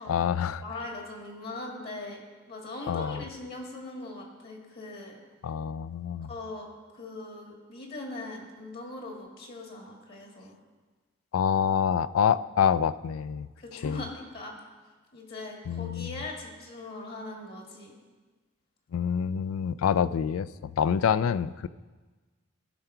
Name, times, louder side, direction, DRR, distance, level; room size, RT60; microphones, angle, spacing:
voice 1, 0.1-0.6 2.9-3.2 5.4-6.3 11.3-13.5 13.8-14.0 15.7-16.1 18.9-21.7, left 7 dB, 85° left, 16 dB, 0.3 m, -26 dB
voice 2, 0.6-2.2 2.5-5.2 6.2-6.7 6.9-10.6 13.6-14.5 15.1-18.0, left 2 dB, 50° left, 0 dB, 1.8 m, -40 dB
15.5 x 5.8 x 4.5 m, 1.3 s
head